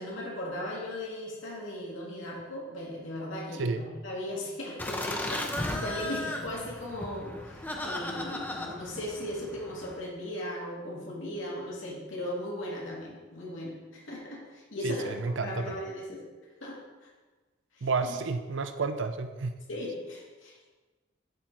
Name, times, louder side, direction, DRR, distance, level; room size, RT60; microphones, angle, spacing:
voice 1, 0.0-15.1 15.4-16.2 16.6-17.1 17.7-17.9 19.7-20.7, left 1 dB, 80° left, -4 dB, 2.3 m, -37 dB
Laughter, 4.8-10.0, left 1 dB, 10° left, 0.7 m, -36 dB
voice 2, 14.8-15.8 17.8-19.6, right 4 dB, 65° right, 8 dB, 0.5 m, -31 dB
11.5 x 4.3 x 4.6 m, 1.3 s
head